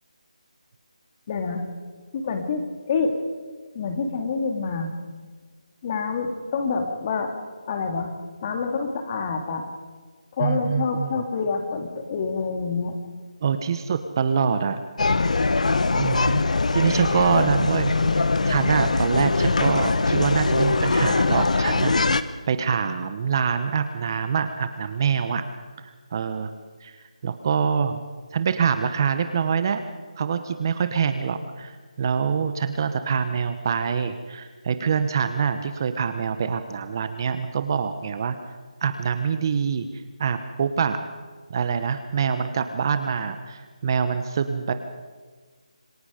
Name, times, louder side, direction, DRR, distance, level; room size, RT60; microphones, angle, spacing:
voice 1, 1.3-1.6 2.1-3.2 3.7-4.9 5.8-7.3 7.7-8.1 8.4-9.6 10.3-13.0 17.3-17.4, left 5 dB, 30° left, 5 dB, 2.5 m, -27 dB
voice 2, 10.4-11.2 13.4-14.8 15.9-16.4 16.7-22.2 22.5-25.4 25.8-26.5 26.8-27.0 27.2-28.0 28.3-29.8 30.2-31.7 32.0-38.3 38.8-39.9 40.2-41.0 41.5-44.7, right 6 dB, 30° right, 10 dB, 1.0 m, -25 dB
sound 1, 15.0-22.2, left 3 dB, 65° left, 1.2 m, -22 dB
27.0 x 19.0 x 5.1 m, 1.5 s
figure-of-eight pair, 165°, 4 cm